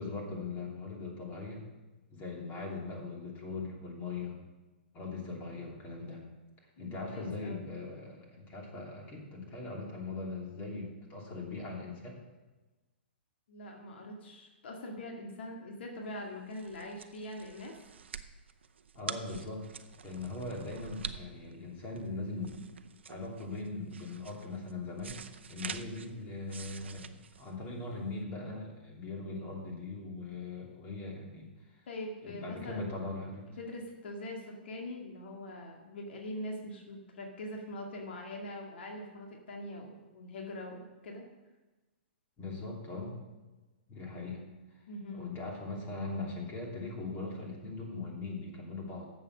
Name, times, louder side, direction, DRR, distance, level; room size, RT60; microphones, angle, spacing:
voice 1, 0.0-1.6 2.1-4.4 4.9-6.2 6.8-12.2 18.9-19.7 20.0-22.6 23.1-25.2 25.5-31.5 32.2-33.4 42.4-43.2 43.9-44.4 45.1-49.1, left 3 dB, 30° left, -1 dB, 3.0 m, -40 dB
voice 2, 6.8-7.6 13.5-17.8 31.9-32.8 33.6-41.2 44.9-45.3, left 1 dB, 70° left, 0 dB, 2.0 m, -43 dB
sound 1, 16.2-28.2, right 7 dB, 80° right, 0.7 m, -46 dB
10.5 x 7.5 x 6.1 m, 1.2 s
hypercardioid pair, 130°, 6 cm